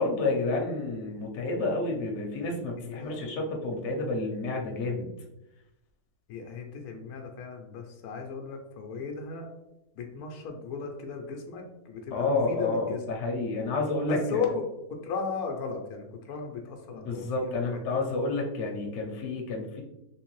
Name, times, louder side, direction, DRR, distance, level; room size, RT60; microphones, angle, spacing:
voice 1, 0.0-5.1 12.1-14.4 17.0-19.8, left 3 dB, 60° left, 1 dB, 1.0 m, -30 dB
voice 2, 2.8-3.2 6.3-9.5 9.9-13.0 14.1-14.7 15.0-18.0, left 5 dB, 85° left, 3 dB, 1.1 m, -36 dB
3.2 x 3.2 x 3.0 m, 0.90 s
omnidirectional pair, 1.6 m